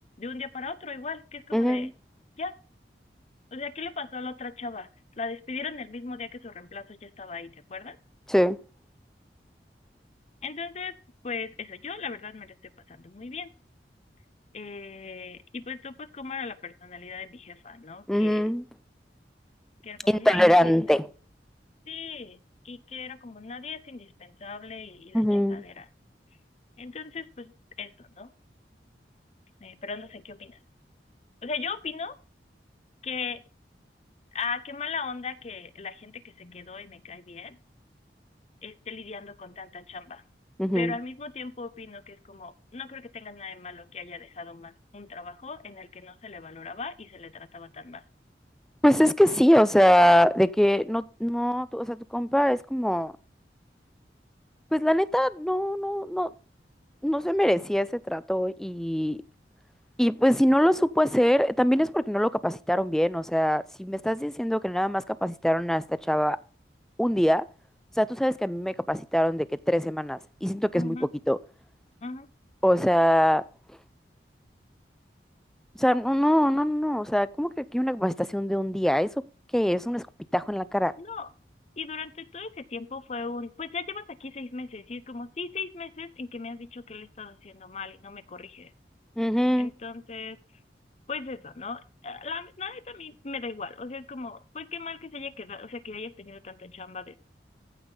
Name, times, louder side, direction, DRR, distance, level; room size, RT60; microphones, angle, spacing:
voice 1, 0.2-1.9 2.4-2.5 3.5-4.9 5.2-8.0 10.4-11.0 11.2-12.5 12.9-13.5 14.5-18.5 19.8-20.7 21.9-22.4 22.6-25.9 26.8-27.5 27.8-28.3 29.6-30.6 31.4-32.2 33.0-33.4 34.3-37.6 38.6-40.2 40.7-48.0 70.7-71.1 72.0-72.3 81.0-81.3 81.8-88.7 89.6-90.4 91.1-97.2, left 4 dB, 40° left, 0.7 m, -38 dB
voice 2, 1.5-1.9 8.3-8.6 18.1-18.6 20.1-21.1 25.1-25.6 40.6-40.9 48.8-53.1 54.7-56.3 57.0-59.2 60.0-66.4 67.0-67.5 68.0-71.0 71.3-71.4 72.6-73.4 75.8-79.1 79.5-80.1 80.3-80.9 89.2-89.7, equal, 5° left, 0.4 m, -23 dB
15.0 x 5.5 x 3.9 m
head